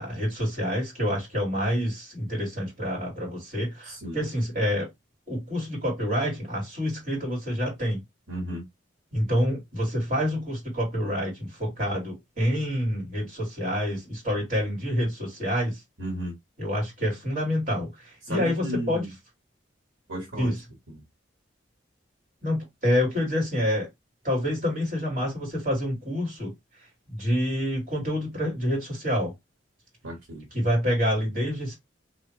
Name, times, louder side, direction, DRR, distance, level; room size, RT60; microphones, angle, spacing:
voice 1, 0.0-4.9 5.3-8.0 9.1-15.8 16.6-19.0 20.4-20.6 22.4-23.9 24.2-26.5 27.1-29.3 30.5-31.8, equal, 40° right, 2.3 m, -27 dB
voice 2, 3.9-4.2 8.3-8.6 16.0-16.4 18.3-19.1 20.1-20.5 30.0-30.5, equal, 85° right, 1.8 m, -33 dB
2.9 x 2.8 x 3.2 m
head